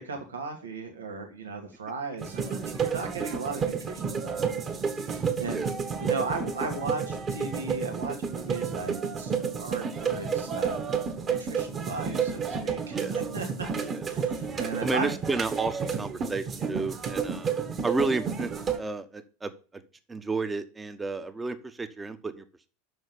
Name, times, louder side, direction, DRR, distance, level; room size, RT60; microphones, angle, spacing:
voice 1, 0.0-4.6 5.4-5.7 6.0-10.8 11.3-15.1, right 3 dB, 80° right, 3 dB, 1.7 m, -36 dB
sound 1, 2.2-18.8, right 6 dB, 30° right, 1.6 m, -31 dB
voice 2, 14.8-17.5 17.8-19.8 20.1-22.4, right 3 dB, 15° right, 10 dB, 1.1 m, -32 dB
6.4 x 6.3 x 7.0 m, 0.37 s
figure-of-eight pair, 80°, 0 cm